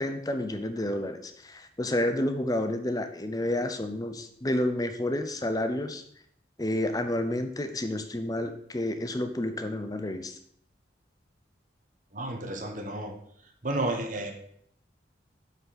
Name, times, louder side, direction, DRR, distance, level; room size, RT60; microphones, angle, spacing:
voice 1, 0.0-6.0 6.6-10.4, left 1 dB, 20° left, 8 dB, 0.6 m, -30 dB
voice 2, 12.1-13.1 13.6-14.3, right 2 dB, 45° right, 4 dB, 1.1 m, -31 dB
7.2 x 5.3 x 4.1 m, 0.66 s
head